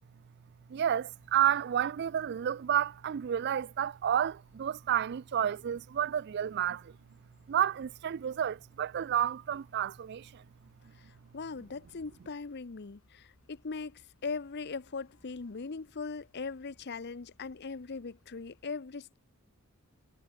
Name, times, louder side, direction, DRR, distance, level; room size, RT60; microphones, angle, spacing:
voice 1, 0.7-7.0 7.5-10.4, right 9 dB, 50° right, 0.3 m, -30 dB
sound 1, 1.1-18.7, left 1 dB, 70° left, 7.6 m, -68 dB
voice 2, 11.0-19.2, left 4 dB, 50° left, 0.7 m, -40 dB
head